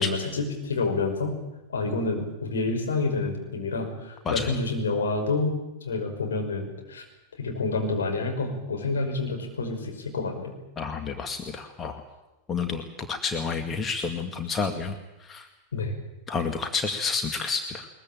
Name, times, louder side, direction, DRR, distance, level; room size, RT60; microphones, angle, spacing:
voice 1, 0.0-1.4 1.7-5.5 5.8-7.0 7.4-10.5 15.7-15.9, left 3 dB, 65° left, 3 dB, 5.7 m, -28 dB
voice 2, 10.8-12.0 12.5-15.0 15.2-15.5 16.3-17.9, left 5 dB, 20° left, 6 dB, 2.0 m, -30 dB
21.5 x 21.5 x 8.8 m, 0.98 s
figure-of-eight pair, 90°, 0 cm